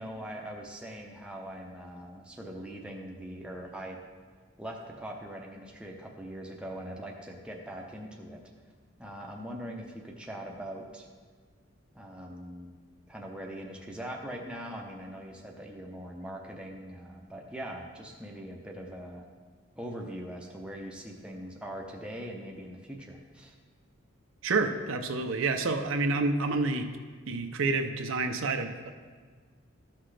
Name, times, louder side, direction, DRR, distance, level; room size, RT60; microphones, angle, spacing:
voice 1, 0.0-4.0 4.6-8.4 9.0-11.1 11.9-12.8 13.1-19.3 19.8-23.6, equal, 5° right, -1 dB, 0.7 m, -41 dB
voice 2, 24.4-26.9 27.3-28.9, right 3 dB, 70° right, 6 dB, 0.6 m, -28 dB
13.5 x 5.8 x 3.3 m, 1.5 s
head